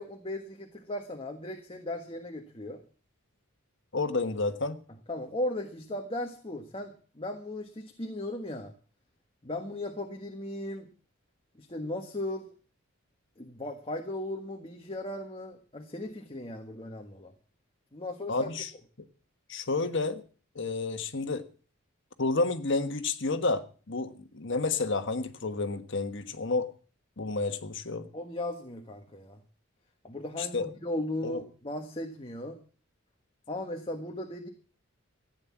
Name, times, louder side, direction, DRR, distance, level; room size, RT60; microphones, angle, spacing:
voice 1, 0.0-2.8 5.1-8.7 9.4-10.9 11.6-12.5 13.4-17.3 17.9-18.5 28.1-29.4 30.0-32.6 33.5-34.5, left 1 dB, 25° left, 3 dB, 1.5 m, -37 dB
voice 2, 3.9-4.8 18.3-18.7 19.5-20.2 20.5-21.4 22.2-26.7 27.2-28.1 30.4-30.7 31.2-31.4, left 3 dB, 65° left, 9 dB, 1.4 m, -30 dB
15.0 x 9.6 x 7.3 m, 0.40 s
head